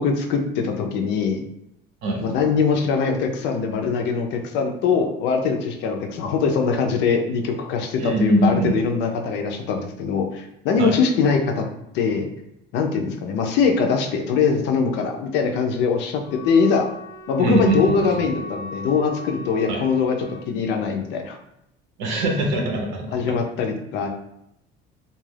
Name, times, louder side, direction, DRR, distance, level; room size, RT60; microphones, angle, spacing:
voice 1, 0.0-1.4 2.2-11.7 11.9-12.3 12.7-16.9 17.3-21.4 23.1-24.1, left 5 dB, 65° left, 4 dB, 0.5 m, -22 dB
voice 2, 8.0-8.7 10.8-11.0 17.4-18.0 19.7-19.8 22.0-23.1, right 1 dB, 65° right, 1 dB, 0.7 m, -21 dB
Wind instrument woodwind instrument, 16.2-20.5, left 1 dB, 25° left, 0.6 m, -38 dB
2.4 x 2.3 x 3.2 m, 0.80 s
cardioid pair, 175°, 19 cm